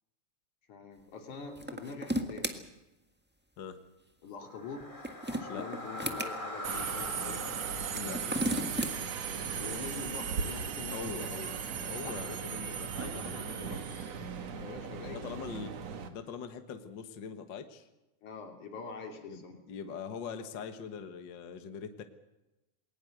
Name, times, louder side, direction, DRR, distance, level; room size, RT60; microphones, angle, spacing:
voice 1, 0.7-2.6 4.2-4.9 5.3-7.5 9.5-11.5 12.0-12.2 14.4-15.3 18.2-19.8, left 4 dB, 70° left, 4 dB, 4.5 m, -44 dB
sound 1, 1.5-2.5 4.8-6.3 7.8-8.9, equal, 15° right, 0.4 m, -34 dB
sound 2, 4.4-10.6, left 1 dB, 10° left, 3.7 m, -44 dB
Subway metro underground, 6.6-16.1, right 7 dB, 60° right, 2.6 m, -37 dB
voice 2, 7.9-9.0 10.9-11.5 11.8-13.8 15.0-15.7 16.1-17.9 19.3-19.4 19.7-22.0, left 6 dB, 45° left, 8 dB, 1.7 m, -42 dB
21.0 x 19.0 x 8.0 m, 0.97 s
omnidirectional pair, 3.6 m